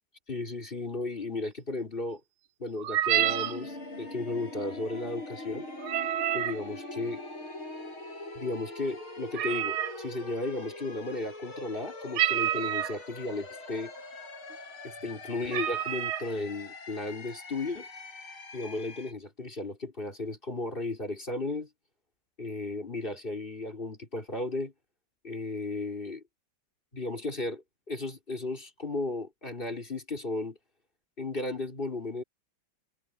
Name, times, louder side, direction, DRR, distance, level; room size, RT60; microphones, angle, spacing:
voice 1, 0.3-2.2 2.6-5.7 6.3-7.2 8.3-13.9 14.8-17.9 18.5-21.7 22.4-24.7 25.2-26.2 26.9-30.6 31.2-32.2, left 2 dB, 25° left, 4.2 m, -35 dB
sound 1, 2.8-3.6 5.8-6.6 9.3-10.0 12.1-13.0 13.8-13.9 14.2-14.5 15.1-15.2 15.5-16.3, right 12 dB, 80° right, 1.7 m, -28 dB
sound 2, 3.1-19.1, left 2 dB, 90° left, 7.5 m, -43 dB
omnidirectional pair, 2.3 m